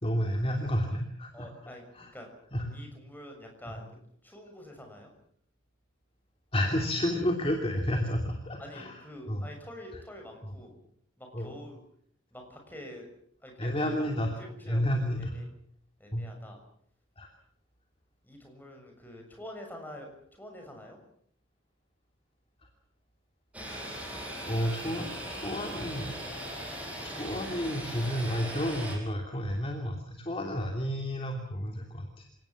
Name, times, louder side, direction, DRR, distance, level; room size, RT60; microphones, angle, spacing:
voice 1, 0.0-1.5 1.9-2.1 2.5-2.8 6.5-9.0 9.2-9.5 10.4-10.5 11.3-11.5 13.6-14.3 14.7-15.4 16.1-16.2 17.2-17.3 24.4-26.2 27.0-32.2, equal, 30° left, 3 dB, 3.0 m, -31 dB
voice 2, 1.3-1.8 2.1-2.3 2.6-3.9 4.2-5.1 8.6-10.8 11.2-11.8 12.3-13.1 13.4-14.1 14.4-14.8 15.2-15.4 16.0-16.6 18.2-21.0, left 1 dB, 10° left, 2 dB, 6.8 m, -46 dB
sound 1, 23.5-29.0, equal, 5° right, 5.9 m, -39 dB
28.0 x 18.5 x 7.4 m, 0.64 s
head